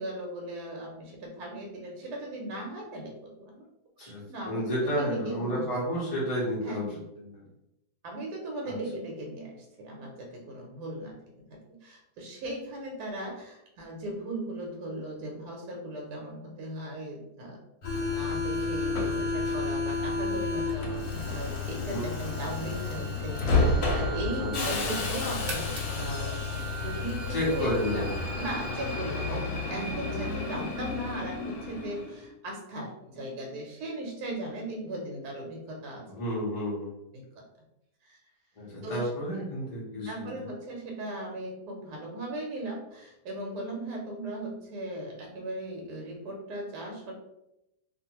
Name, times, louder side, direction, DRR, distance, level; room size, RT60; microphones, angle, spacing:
voice 1, 0.0-3.6 4.0-5.9 6.6-7.0 8.0-11.2 11.5-17.6 18.1-28.1 28.4-36.0 38.0-38.2 38.8-39.1 40.1-47.2, right 1 dB, 80° right, -1 dB, 1.2 m, -38 dB
voice 2, 4.0-7.5 8.6-8.7 21.9-22.0 24.4-24.8 27.3-28.1 36.1-36.9 38.6-40.4, equal, 45° left, -7 dB, 0.5 m, -31 dB
Subway metro underground, 17.8-32.2, left 3 dB, 75° left, 1.1 m, -31 dB
sound 1, 24.8-27.6, right 2 dB, 60° right, 0.6 m, -45 dB
2.5 x 2.5 x 2.8 m, 0.87 s
omnidirectional pair, 1.7 m